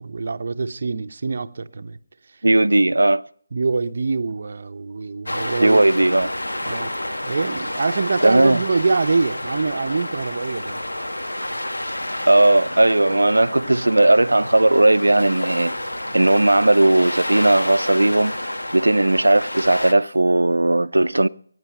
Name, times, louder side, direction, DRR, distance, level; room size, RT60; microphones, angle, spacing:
voice 1, 0.0-2.0 3.5-5.9 6.6-6.9 7.2-10.8, right 4 dB, 50° right, 0.9 m, -24 dB
voice 2, 2.4-3.2 5.6-6.3 8.2-8.6 12.3-15.7 16.1-21.3, right 2 dB, 85° right, 0.7 m, -17 dB
sound 1, 5.3-19.9, left 1 dB, 85° left, 2.3 m, -29 dB
21.5 x 9.7 x 5.5 m
figure-of-eight pair, 160°, 0 cm